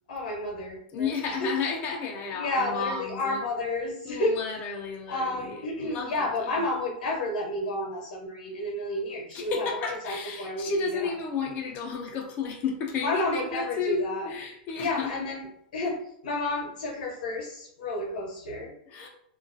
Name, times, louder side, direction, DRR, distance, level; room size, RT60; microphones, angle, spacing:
voice 1, 0.1-1.1 1.4-1.5 2.3-4.3 5.1-11.1 13.0-14.3 14.8-15.4 15.7-16.0 16.2-18.7, left 1 dB, 80° left, -2 dB, 0.8 m, -31 dB
voice 2, 0.9-3.5 4.0-6.6 9.3-15.1 18.9-19.1, left 5 dB, 35° left, 1 dB, 0.4 m, -32 dB
2.4 x 2.2 x 2.5 m, 0.72 s
hypercardioid pair, 120°, 5 cm